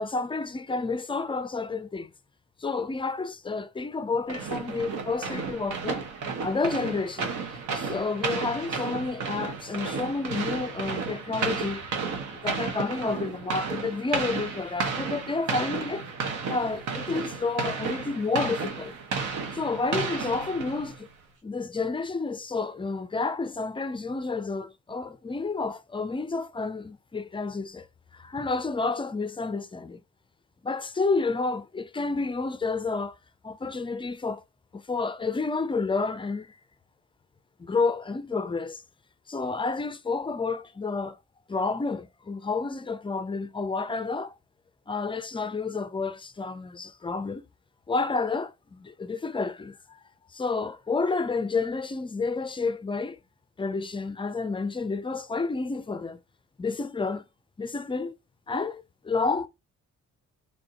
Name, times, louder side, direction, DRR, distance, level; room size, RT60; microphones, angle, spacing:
voice 1, 0.0-2.1 2.6-6.1 6.4-7.3 7.7-11.9 12.3-16.0 16.5-18.9 19.5-21.1 21.4-27.9 28.1-30.0 30.6-33.2 33.4-34.4 34.7-36.6 37.6-38.8 39.3-41.2 41.5-44.3 44.9-47.4 47.9-50.0 50.3-53.2 53.6-56.2 56.6-57.2 57.6-58.1 58.5-59.5, left 4 dB, 15° left, 0.4 m, -30 dB
sound 1, 4.3-21.1, right 5 dB, 80° right, 1.1 m, -33 dB
3.4 x 2.6 x 3.8 m
cardioid pair, 90°, 30 cm